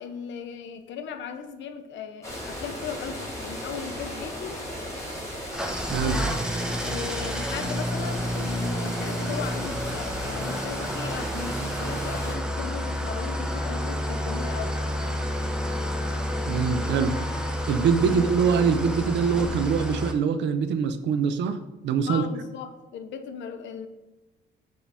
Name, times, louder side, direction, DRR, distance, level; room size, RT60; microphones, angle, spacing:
voice 1, 0.0-4.6 6.8-14.8 18.0-18.3 22.1-23.9, left 7 dB, 70° left, 9 dB, 0.4 m, -37 dB
sound 1, 2.2-12.3, equal, 15° left, 1.3 m, -36 dB
Engine starting / Idling, 5.5-20.1, equal, 5° right, 0.4 m, -30 dB
voice 2, 16.5-17.2 17.7-22.2, right 6 dB, 65° right, 11 dB, 0.4 m, -24 dB
4.7 x 2.3 x 3.3 m, 1.1 s
cardioid pair, 90°, 20 cm